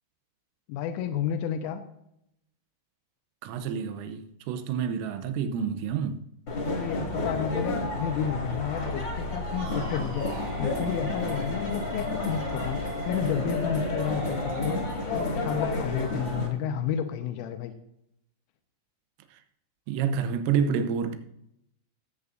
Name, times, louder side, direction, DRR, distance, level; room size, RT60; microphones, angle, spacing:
voice 1, 0.7-1.8 6.6-14.8 15.1-17.7, left 8 dB, 85° left, 3.3 m, -31 dB
voice 2, 3.4-6.2 19.9-21.2, right 7 dB, 90° right, 3.5 m, -28 dB
sound 1, 6.5-16.5, left 2 dB, 35° left, 1.9 m, -31 dB
sound 2, 9.6-14.8, right 2 dB, 40° right, 2.1 m, -38 dB
17.0 x 8.3 x 2.6 m
omnidirectional pair, 5.7 m